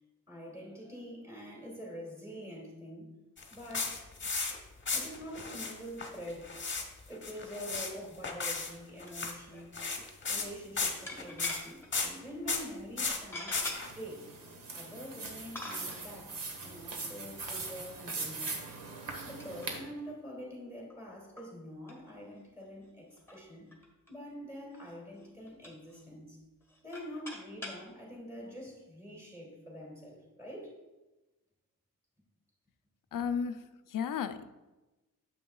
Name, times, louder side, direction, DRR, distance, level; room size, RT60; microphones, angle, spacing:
voice 1, 0.3-3.1 3.4-4.0 4.9-6.5 7.1-9.9 10.3-14.3 14.7-18.6 19.2-23.7 24.1-26.4 26.8-30.8, equal, 10° right, -3 dB, 2.4 m, -45 dB
sound 1, 3.4-4.6 4.9-5.7 6.0-6.8 7.1-7.9 8.2-8.7 9.0-9.3 9.7-10.5 10.8-11.6 11.9-12.1 12.5-12.7 13.0-13.9, left 4 dB, 35° left, 1.0 m, -34 dB
sound 2, 9.0-9.2 9.5-9.6 11.1-11.9 12.4-12.6 13.3-13.8 14.7-14.8 15.6-16.1 18.0-18.7 19.4-19.7 20.1-20.2 20.9-21.0 21.3-21.5 21.9-22.0 22.2-22.3 22.6-22.7 23.2-24.1 24.8-24.9 25.2-26.0 26.6-27.8, left 2 dB, 5° left, 1.3 m, -44 dB
sound 3, 13.7-19.8, right 3 dB, 85° right, 1.3 m, -41 dB
voice 2, 33.1-34.5, left 7 dB, 75° left, 11 dB, 0.5 m, -34 dB
9.1 x 7.5 x 2.3 m, 1.1 s
wide cardioid pair, 145°, 33 cm